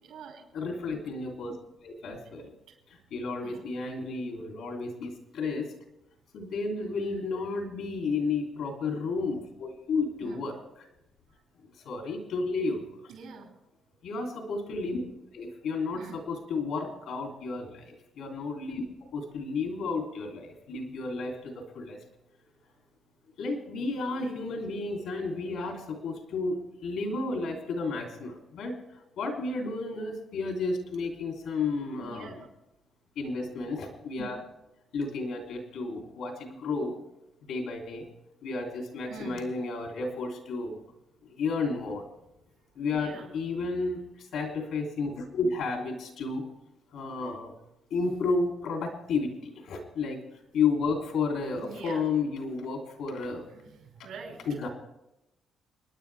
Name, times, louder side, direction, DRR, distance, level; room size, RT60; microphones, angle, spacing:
voice 1, 0.0-0.4 0.8-1.0 2.7-2.8 3.4-3.6 6.7-7.4 10.2-10.4 13.1-13.5 15.9-16.2 32.0-32.4 39.1-39.4 42.9-43.3 51.6-52.1 53.5-54.5, right 5 dB, 85° right, 0 dB, 5.7 m, -45 dB
voice 2, 0.5-1.6 1.8-2.5 2.9-5.7 6.3-10.9 11.8-13.1 14.0-15.0 15.3-18.8 19.1-22.0 23.4-28.8 29.2-32.4 33.1-34.4 34.9-36.9 37.4-38.1 38.4-40.8 41.2-42.0 42.7-46.5 46.9-47.5 47.9-50.2 50.5-53.4 54.5-54.7, left 4 dB, 80° left, 2 dB, 3.3 m, -32 dB
29.0 x 10.0 x 3.5 m, 0.92 s
cardioid pair, 90°, 0 cm